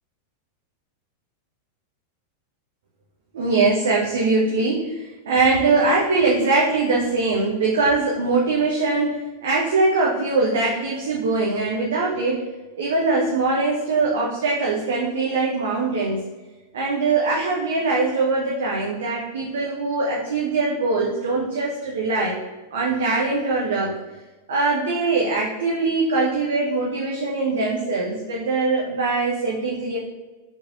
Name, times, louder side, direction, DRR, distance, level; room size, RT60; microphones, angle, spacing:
voice 1, 3.3-12.4 12.8-16.2 16.7-22.4 22.7-23.9 24.5-30.0, right 3 dB, 60° right, -3 dB, 0.5 m, -22 dB
3.5 x 3.2 x 2.5 m, 1.2 s
figure-of-eight pair, 90°, 0 cm